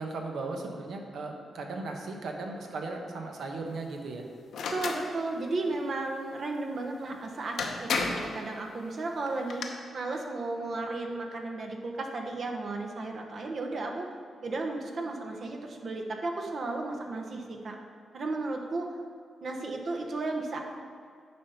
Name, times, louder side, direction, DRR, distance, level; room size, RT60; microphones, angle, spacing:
voice 1, 0.0-4.2, right 3 dB, 75° right, 2 dB, 1.0 m, -37 dB
sound 1, 4.5-5.0 7.1-7.2 7.6-8.3 9.3-9.7, left 4 dB, 80° left, 0.7 m, -31 dB
voice 2, 4.7-9.7 9.9-14.1 14.4-17.8 18.1-18.8 19.4-20.6, right 2 dB, 55° right, 2 dB, 1.0 m, -34 dB
9.4 x 3.5 x 5.7 m, 2.3 s
cardioid pair, 85°, 0 cm